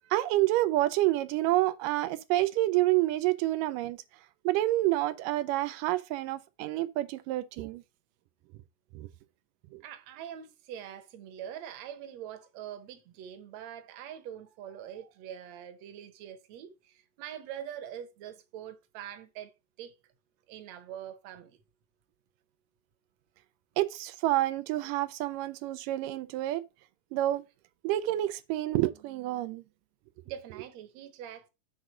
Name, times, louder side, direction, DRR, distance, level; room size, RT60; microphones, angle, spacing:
voice 1, 0.1-4.0 4.5-7.8 9.0-9.1 9.7-9.8 23.8-26.7 27.1-27.5 27.8-29.6, right 16 dB, 85° right, 2.2 m, -28 dB
voice 2, 9.8-19.5 19.8-19.9 20.5-21.6 30.3-31.5, right 10 dB, 65° right, 2.0 m, -44 dB
8.0 x 3.7 x 6.0 m
omnidirectional pair, 3.8 m